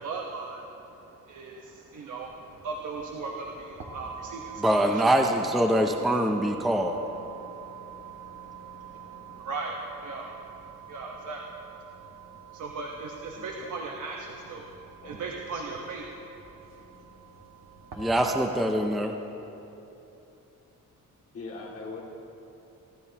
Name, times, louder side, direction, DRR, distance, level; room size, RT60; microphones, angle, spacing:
voice 1, 0.0-5.1 6.1-16.2, right 3 dB, 65° right, 0 dB, 1.1 m, -39 dB
sound 1, 2.2-18.4, right 8 dB, 85° right, 1.9 m, -46 dB
voice 2, 4.6-7.0 18.0-19.1, right 1 dB, ahead, 3 dB, 0.5 m, -24 dB
voice 3, 13.4-13.7 14.2-14.3 15.0-15.3 21.3-22.0, left 3 dB, 45° left, -5 dB, 2.3 m, -41 dB
27.5 x 13.0 x 2.9 m, 3.0 s
wide cardioid pair, 180°, 33 cm